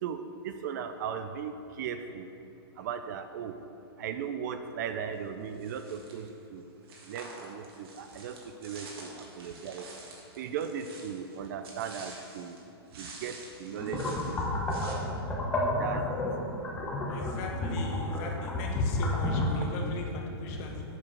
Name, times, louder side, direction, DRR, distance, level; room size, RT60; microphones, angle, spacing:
voice 1, 0.0-2.3 2.8-3.5 4.0-6.6 7.1-9.1 9.4-9.9 10.4-12.6 13.0-14.4 15.8-16.2, right 7 dB, 45° right, 9 dB, 0.4 m, -37 dB
sound 1, 5.5-6.3 6.8-12.6 12.9-15.0, right 3 dB, 60° right, 1.7 m, -48 dB
sound 2, 13.8-19.6, left 1 dB, 10° left, 0.9 m, -31 dB
voice 2, 17.1-20.8, left 3 dB, 35° left, 2 dB, 1.0 m, -36 dB
7.6 x 4.8 x 6.0 m, 2.7 s
hypercardioid pair, 160°, 14 cm